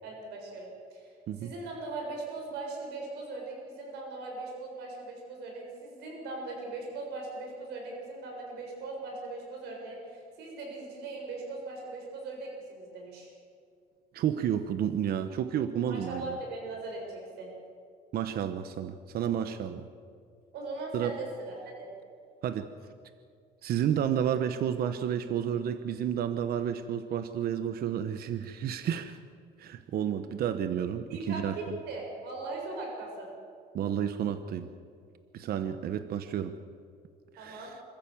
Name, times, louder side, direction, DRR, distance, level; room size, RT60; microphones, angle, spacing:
voice 1, 0.0-1.1 1.4-13.3 15.9-17.5 20.5-21.9 31.1-33.3 37.4-37.7, right 3 dB, 80° right, 0 dB, 6.9 m, -39 dB
voice 2, 14.1-16.4 18.1-19.9 20.9-21.2 22.4-22.7 23.6-29.2 29.6-31.8 33.7-34.7 35.3-36.6 37.3-37.8, right 9 dB, 65° right, 10 dB, 1.1 m, -31 dB
26.5 x 14.5 x 7.3 m, 2.3 s
cardioid pair, 110°, 17 cm